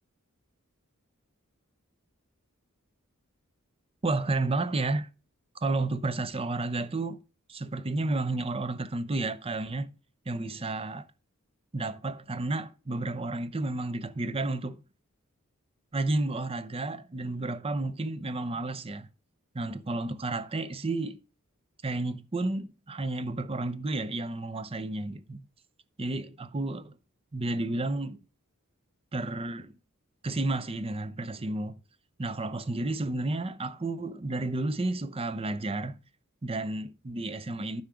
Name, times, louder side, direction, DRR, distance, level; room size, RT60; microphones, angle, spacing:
voice 1, 4.0-5.1 5.6-7.2 7.5-9.9 10.3-11.1 11.7-14.8 15.9-19.1 19.5-21.2 21.8-25.5 26.0-27.0 27.3-28.2 29.1-29.7 30.2-31.8 32.2-36.0 36.4-37.8, right 2 dB, 25° right, 0.6 m, -31 dB
9.6 x 5.7 x 4.9 m
head